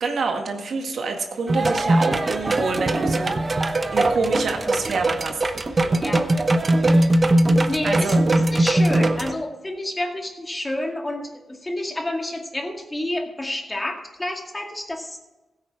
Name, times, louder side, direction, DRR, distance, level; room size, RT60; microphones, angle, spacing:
voice 1, 0.0-3.4 3.9-5.4 7.8-8.2, right 4 dB, 70° right, 3 dB, 1.9 m, -27 dB
sound 1, 1.5-9.3, right 1 dB, 35° right, 0.9 m, -20 dB
voice 2, 6.0-6.3 6.9-7.2 7.7-15.2, left 1 dB, 20° left, 3 dB, 2.0 m, -29 dB
15.5 x 8.8 x 4.7 m, 1.1 s
cardioid pair, 75°, 0 cm